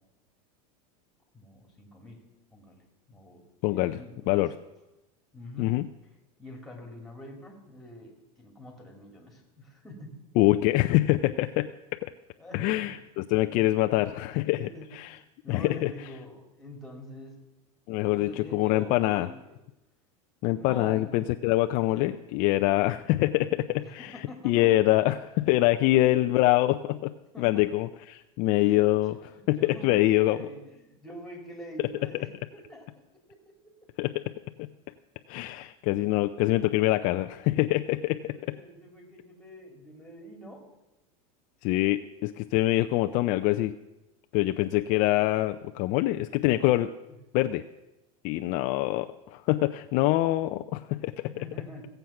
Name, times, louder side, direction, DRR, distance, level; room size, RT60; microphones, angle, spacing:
voice 1, 1.3-2.2 2.5-4.4 5.3-5.7 6.4-10.1 12.4-12.9 14.6-14.9 15.2-17.5 18.1-19.6 20.5-21.1 21.9-22.1 23.8-24.7 25.8-26.2 27.3-27.6 28.6-28.9 29.2-33.0 38.3-40.6 51.2-51.9, left 1 dB, ahead, 1 dB, 2.8 m, -45 dB
voice 2, 3.6-4.0 4.3-4.5 5.6-5.8 10.4-11.7 12.0-12.1 12.5-15.2 15.5-15.9 17.9-19.3 20.4-24.1 24.4-27.1 27.4-29.2 29.5-30.4 34.0-34.1 34.6-34.7 35.3-38.4 41.6-43.7 44.3-46.9 47.3-47.6 48.2-51.1, left 17 dB, 45° left, 8 dB, 0.5 m, -25 dB
16.5 x 7.9 x 5.8 m, 0.96 s
supercardioid pair, 135°, 19 cm